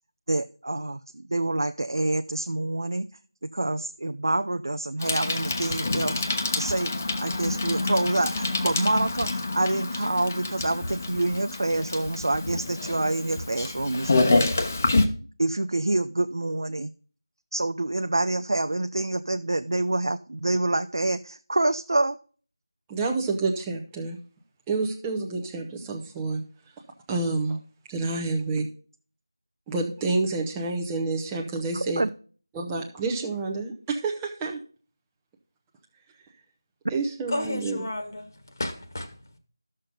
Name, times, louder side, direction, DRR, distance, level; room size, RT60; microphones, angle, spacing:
voice 1, 0.3-3.1 3.5-6.9 7.2-14.6 15.4-16.9 17.5-22.2 31.7-32.1, right 2 dB, 65° right, 0.5 m, -27 dB
Bicycle, 5.0-15.1, left 2 dB, 35° left, 1.0 m, -27 dB
voice 2, 22.9-24.2 24.7-26.4 27.1-27.6 27.9-28.6 29.7-32.0 32.5-34.6 36.9-37.9, right 3 dB, 5° right, 0.7 m, -28 dB
voice 3, 37.3-39.1, left 1 dB, 50° left, 1.5 m, -32 dB
13.0 x 6.5 x 3.8 m
figure-of-eight pair, 170°, 2 cm